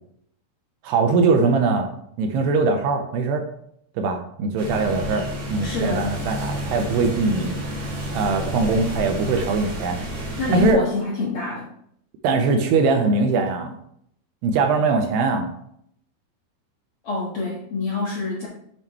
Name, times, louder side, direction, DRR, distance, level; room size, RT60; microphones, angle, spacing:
voice 1, 0.8-1.9 2.2-3.4 4.0-7.5 8.1-10.0 10.5-10.8 12.2-13.8 14.4-15.5, right 4 dB, 80° right, 5 dB, 2.7 m, -21 dB
sound 1, 4.6-10.7, equal, 50° right, 3.2 m, -30 dB
voice 2, 4.8-5.2 5.6-6.0 7.2-7.3 10.4-11.7 17.0-18.5, left 3 dB, 75° left, -5 dB, 1.3 m, -27 dB
8.4 x 7.1 x 3.1 m, 0.70 s
omnidirectional pair, 5.0 m